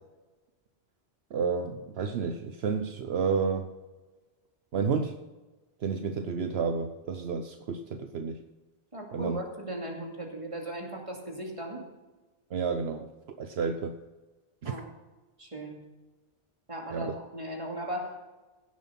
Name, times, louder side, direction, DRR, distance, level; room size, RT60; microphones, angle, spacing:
voice 1, 1.3-3.7 4.7-5.1 5.8-8.4 9.1-9.4 12.5-13.1 13.4-13.9 14.6-14.8 16.9-17.1, right 5 dB, 70° right, 7 dB, 1.0 m, -30 dB
voice 2, 8.9-11.9 14.6-14.9 15.4-15.8 16.7-18.2, right 1 dB, 30° right, 0 dB, 2.7 m, -37 dB
16.5 x 7.5 x 5.8 m, 1.2 s
omnidirectional pair, 1.1 m